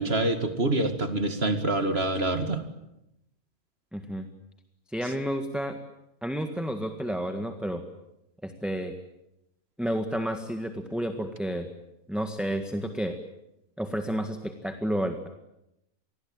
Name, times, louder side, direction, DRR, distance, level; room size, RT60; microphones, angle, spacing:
voice 1, 0.0-2.6, right 2 dB, 45° right, 8 dB, 2.4 m, -26 dB
voice 2, 3.9-4.3 4.9-5.8 6.2-7.8 8.4-8.9 9.8-11.7 12.1-13.2 13.8-15.3, equal, ahead, 6 dB, 1.6 m, -31 dB
27.5 x 20.5 x 9.0 m, 0.86 s
omnidirectional pair, 1.5 m